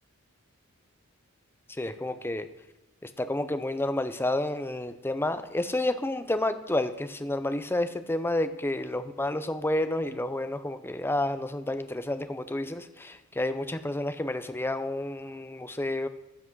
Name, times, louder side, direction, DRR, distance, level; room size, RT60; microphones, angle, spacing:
voice 1, 1.7-2.5 3.0-16.1, left 1 dB, 10° left, 10 dB, 0.6 m, -30 dB
15.0 x 5.9 x 6.2 m, 0.96 s
head